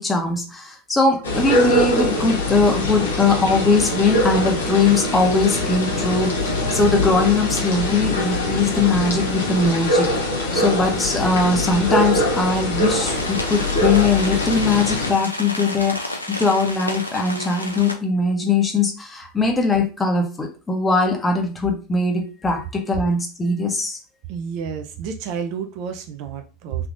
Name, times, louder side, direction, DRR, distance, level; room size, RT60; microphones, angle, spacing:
voice 1, 0.0-10.1 10.5-24.0, left 3 dB, 15° left, 3 dB, 0.8 m, -20 dB
sound 1, 1.2-15.1, left 1 dB, 70° left, 0.9 m, -23 dB
sound 2, 12.9-17.9, left 1 dB, 85° left, 0.5 m, -31 dB
voice 2, 24.3-26.9, right 7 dB, 50° right, 6 dB, 0.5 m, -30 dB
3.3 x 2.9 x 2.5 m, 0.34 s
figure-of-eight pair, 80°, 0 cm